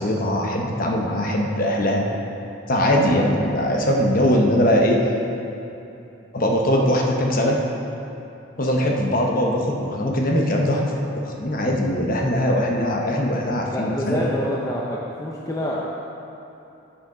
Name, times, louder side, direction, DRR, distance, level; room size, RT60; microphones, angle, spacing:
voice 1, 0.0-2.1 2.7-5.0 6.3-7.6 8.6-11.0 11.2-14.2, equal, 40° left, 0 dB, 0.9 m, -21 dB
voice 2, 13.7-15.8, left 1 dB, 15° left, -4 dB, 0.5 m, -27 dB
8.1 x 6.5 x 5.0 m, 2.9 s
head